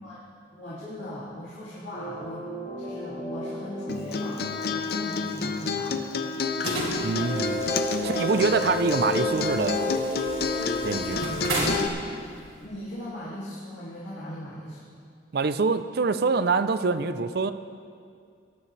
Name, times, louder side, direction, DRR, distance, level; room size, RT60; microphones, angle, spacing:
voice 1, 0.5-2.5 2.8-6.0 8.0-8.5 12.6-15.0, equal, 70° left, -9 dB, 2.5 m, -39 dB
sound 1, 1.9-6.8 7.1-11.7, left 1 dB, 35° left, 3.8 m, -34 dB
Acoustic guitar, 3.9-11.9, left 4 dB, 55° left, 0.6 m, -30 dB
sound 2, 6.6-12.6, right 1 dB, 85° right, 3.4 m, -34 dB
voice 2, 7.0-7.8 8.0-10.0 10.8-11.3 15.3-17.5, right 4 dB, 55° right, 12 dB, 0.5 m, -25 dB
18.5 x 11.0 x 3.2 m, 2.3 s
head